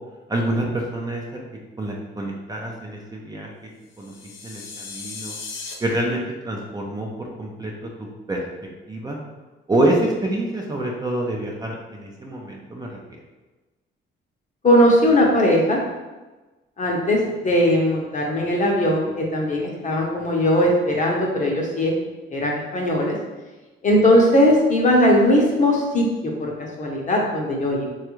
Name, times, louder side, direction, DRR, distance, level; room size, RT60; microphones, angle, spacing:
voice 1, 0.3-1.2 1.8-3.5 4.0-4.1 4.4-5.3 5.8-7.7 8.3-8.4 8.9-9.2 9.7-13.0, right 1 dB, 20° right, -1 dB, 0.5 m, -26 dB
sound 1, 3.9-5.7, left 4 dB, 85° left, 0.5 m, -36 dB
voice 2, 14.6-15.8 16.8-17.2 17.4-21.9 22.3-23.2 23.8-26.5 26.8-27.9, left 1 dB, 40° left, -1 dB, 0.8 m, -19 dB
3.2 x 2.3 x 3.0 m, 1.2 s
cardioid pair, 90°, 20 cm